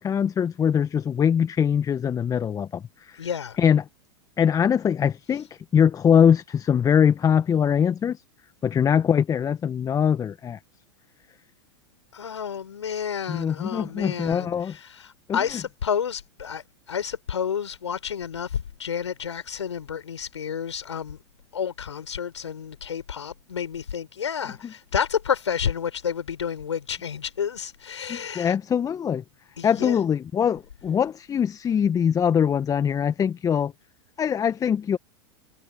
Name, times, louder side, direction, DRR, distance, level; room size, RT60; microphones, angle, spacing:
voice 1, 0.0-3.3 3.6-3.8 4.4-5.5 5.7-8.2 8.6-10.6 13.3-14.7 15.3-15.4 28.1-29.2 29.6-33.7 34.2-35.0, left 8 dB, 25° left, 1.3 m, -22 dB
voice 2, 3.2-3.6 12.1-21.2 21.5-28.5 29.6-30.0, left 7 dB, 80° left, 6.4 m, -30 dB
hypercardioid pair, 95°, 15 cm